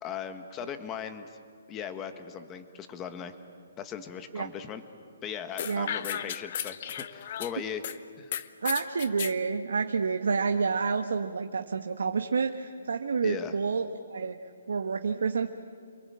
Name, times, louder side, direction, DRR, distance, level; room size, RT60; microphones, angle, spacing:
voice 1, 0.0-1.4 1.7-3.3 3.8-4.8 5.2-7.8 8.2-8.3 13.2-13.5, left 8 dB, 15° left, 8 dB, 1.4 m, -38 dB
sound 1, 5.6-8.0 8.3-9.4, left 9 dB, 35° left, 0.8 m, -35 dB
voice 2, 8.6-14.3 14.7-15.5, right 5 dB, 75° right, 6 dB, 1.3 m, -29 dB
27.5 x 23.5 x 8.7 m, 2.2 s
hypercardioid pair, 170°, 0 cm